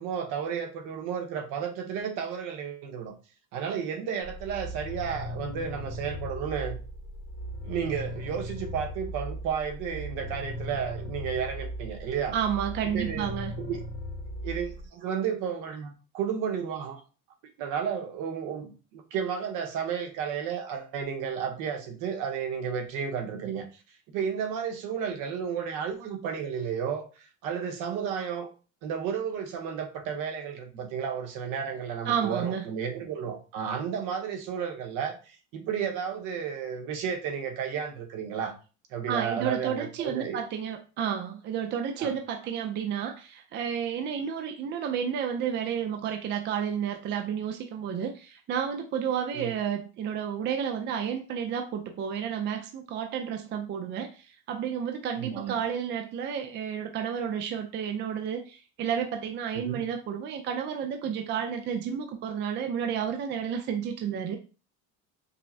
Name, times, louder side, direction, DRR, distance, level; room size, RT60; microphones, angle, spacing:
voice 1, 0.0-3.1 3.5-6.8 7.6-12.3 12.9-13.3 13.6-13.8 14.4-17.0 17.6-23.6 24.1-28.5 28.8-38.5 38.9-40.4 42.0-42.1 49.3-49.5 55.2-55.5 59.5-59.8, right 7 dB, 70° right, 4 dB, 1.0 m, -32 dB
sound 1, 4.2-14.9, left 1 dB, 30° left, 0.6 m, -38 dB
voice 2, 12.3-13.5 32.1-32.7 39.1-64.4, right 8 dB, 35° right, 4 dB, 0.4 m, -31 dB
5.3 x 2.0 x 2.7 m, 0.34 s
cardioid pair, 140°, 32 cm